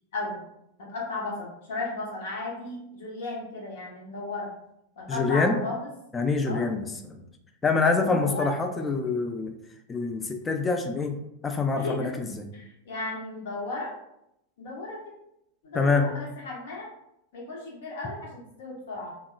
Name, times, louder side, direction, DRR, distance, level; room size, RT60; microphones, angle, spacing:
voice 1, 0.8-4.5 5.0-5.8 6.4-6.7 7.9-8.5 11.7-12.1 12.5-13.9 14.6-15.0 15.6-16.9 17.3-19.1, left 2 dB, 60° left, -2 dB, 0.8 m, -35 dB
voice 2, 5.1-5.6 6.1-7.2 7.6-9.6 9.9-11.2 11.4-12.5 15.7-16.1, left 4 dB, 15° left, 4 dB, 0.3 m, -25 dB
2.7 x 2.1 x 2.3 m, 0.81 s
figure-of-eight pair, 90°, 0 cm